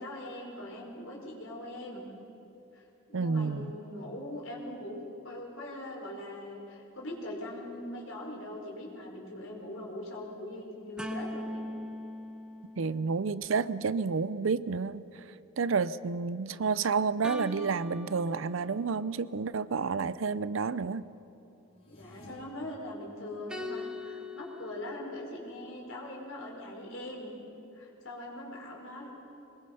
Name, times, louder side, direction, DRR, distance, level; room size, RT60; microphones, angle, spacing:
voice 1, 0.0-2.0 2.7-2.8 3.1-11.7 21.9-27.3 27.7-29.1, left 1 dB, 70° left, 4.5 m, -41 dB
voice 2, 3.1-3.7 12.8-15.0 15.6-21.1, right 5 dB, 70° right, 0.5 m, -30 dB
sound 1, 11.0-13.5 17.2-19.1 23.5-24.9, left 1 dB, 5° right, 1.0 m, -41 dB
sound 2, 21.7-22.3, left 1 dB, 30° left, 5.5 m, -54 dB
22.5 x 21.0 x 5.7 m
head